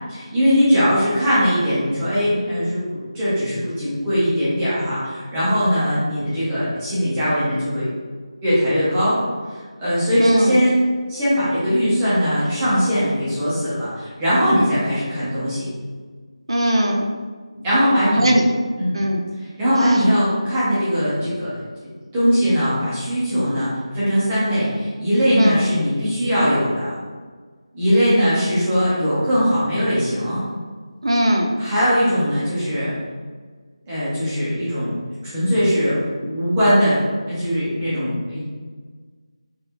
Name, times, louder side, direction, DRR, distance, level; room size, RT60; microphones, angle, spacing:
voice 1, 0.1-7.9 8.4-9.2 9.5-10.8 11.1-15.7 17.6-18.3 18.8-19.1 19.6-21.5 21.8-26.9 27.7-30.4 31.6-32.9 33.9-34.9 35.2-37.0 37.3-38.4, equal, 5° right, -12 dB, 0.5 m, -20 dB
voice 2, 10.2-10.5 16.5-17.1 18.2-18.4 18.9-19.2 25.4-25.7 31.0-31.5, equal, 60° right, 1 dB, 0.6 m, -19 dB
5.3 x 2.3 x 2.8 m, 1.5 s
figure-of-eight pair, 180°, 3 cm